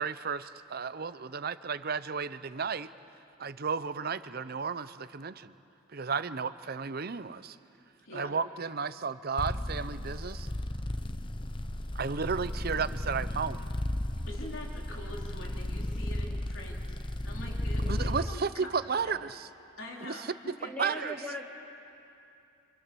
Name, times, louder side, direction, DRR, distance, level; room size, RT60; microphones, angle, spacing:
voice 1, 0.0-2.9 3.4-5.5 5.9-7.6 8.1-10.5 11.9-13.7 17.8-19.5 20.0-20.3 20.8-21.1, right 5 dB, 50° right, 14 dB, 0.7 m, -33 dB
voice 2, 8.0-8.4 14.3-17.0 17.2-19.1 19.8-20.7, left 1 dB, 80° left, -1 dB, 3.7 m, -44 dB
sound 1, 9.4-18.3, left 1 dB, 25° left, 0.7 m, -34 dB
voice 3, 20.6-21.4, equal, 10° left, -3 dB, 2.8 m, -38 dB
29.5 x 25.0 x 7.0 m, 2.7 s
head